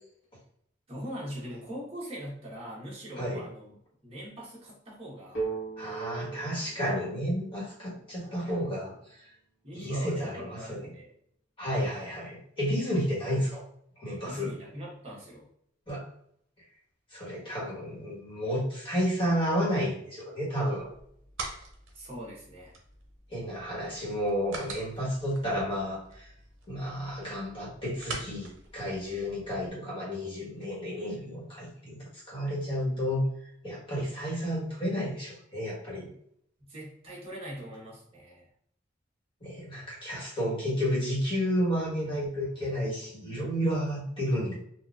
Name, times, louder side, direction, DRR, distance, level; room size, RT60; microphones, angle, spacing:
voice 1, 0.9-3.7 4.0-5.5 8.2-8.4 9.6-11.1 11.8-12.1 14.2-15.5 21.9-22.7 36.6-38.5 42.0-42.2, equal, 30° right, -5 dB, 1.2 m, -42 dB
sound 1, 5.3-9.0, right 5 dB, 70° left, 1.2 m, -39 dB
voice 2, 5.8-8.9 9.7-10.9 11.6-13.6 14.0-14.5 15.9-16.1 17.1-20.9 23.3-26.3 26.7-33.3 33.6-36.1 39.4-44.5, equal, 25° left, -6 dB, 1.3 m, -31 dB
sound 2, 20.8-29.7, right 3 dB, 80° right, 0.7 m, -45 dB
4.0 x 2.4 x 2.4 m, 0.67 s
head